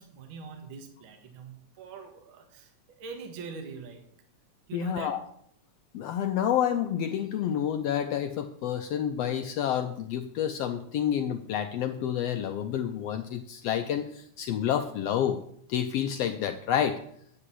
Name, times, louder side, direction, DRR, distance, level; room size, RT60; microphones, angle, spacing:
voice 1, 0.0-4.0 4.7-5.1, right 5 dB, 50° right, 4 dB, 1.9 m, -43 dB
voice 2, 4.7-5.2 5.9-15.4 15.7-17.0, left 9 dB, 85° left, 7 dB, 1.4 m, -29 dB
9.8 x 6.5 x 7.5 m, 0.68 s
omnidirectional pair, 3.6 m